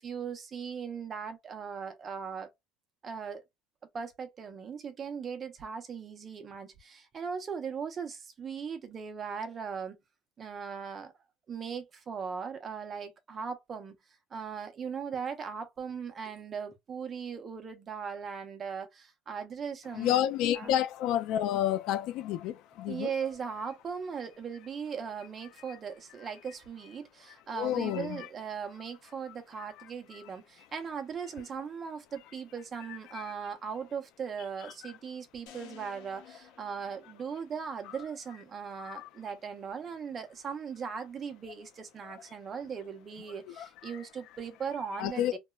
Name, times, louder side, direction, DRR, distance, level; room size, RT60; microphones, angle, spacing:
voice 1, 0.0-2.5 3.0-3.4 3.9-10.0 10.4-11.1 11.5-13.9 14.3-20.2 20.5-20.8 22.9-45.4, right 6 dB, 25° right, 0.6 m, -39 dB
voice 2, 19.9-23.1 25.7-25.8 27.5-28.3 29.3-29.4 30.1-30.2 32.9-33.2 38.8-39.1 42.0-42.1 43.6-44.0 45.0-45.4, left 11 dB, 60° left, 0.3 m, -31 dB
sound 1, 35.5-37.7, left 9 dB, 75° left, 0.7 m, -54 dB
2.9 x 2.1 x 2.3 m
cardioid pair, 145°, 0 cm